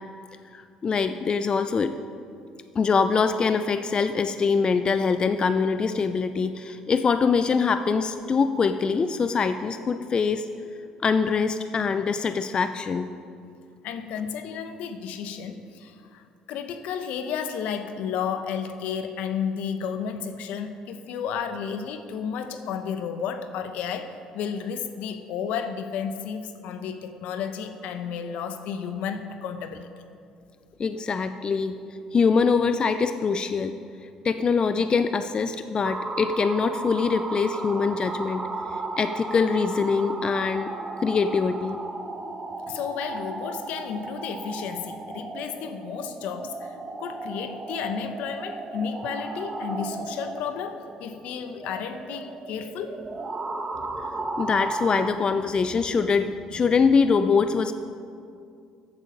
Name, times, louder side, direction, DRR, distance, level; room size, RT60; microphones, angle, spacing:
voice 1, 0.5-2.0 2.7-10.5 11.0-13.1 30.8-31.7 32.1-33.8 34.2-40.7 41.0-41.8 54.4-57.7, left 5 dB, 40° left, 9 dB, 0.5 m, -23 dB
voice 2, 13.8-29.9 42.7-53.0, left 7 dB, 75° left, 8 dB, 0.9 m, -32 dB
sound 1, 35.8-55.1, right 2 dB, 30° right, 1.4 m, -35 dB
14.0 x 8.3 x 5.1 m, 2.4 s
supercardioid pair, 70°, 2 cm